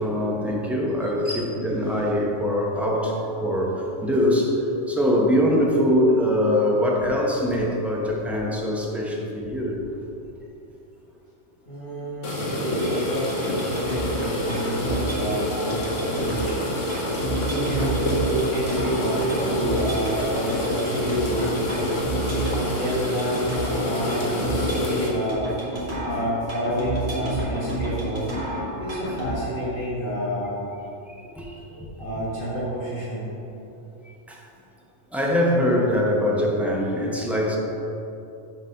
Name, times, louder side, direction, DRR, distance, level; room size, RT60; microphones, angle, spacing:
voice 1, 0.0-9.8 12.4-12.5 31.1-31.6 34.0-34.4 35.1-37.6, equal, ahead, -2 dB, 0.7 m, -23 dB
voice 2, 11.7-16.9 17.3-22.0 22.5-25.5 26.0-28.4 28.7-30.6 31.7-33.3, equal, 45° left, -9 dB, 1.6 m, -29 dB
sound 1, 12.2-25.1, left 1 dB, 80° left, 1.4 m, -28 dB
sound 2, 12.8-29.3, right 1 dB, 60° right, 2.0 m, -30 dB
7.4 x 4.0 x 5.7 m, 2.8 s
omnidirectional pair, 1.3 m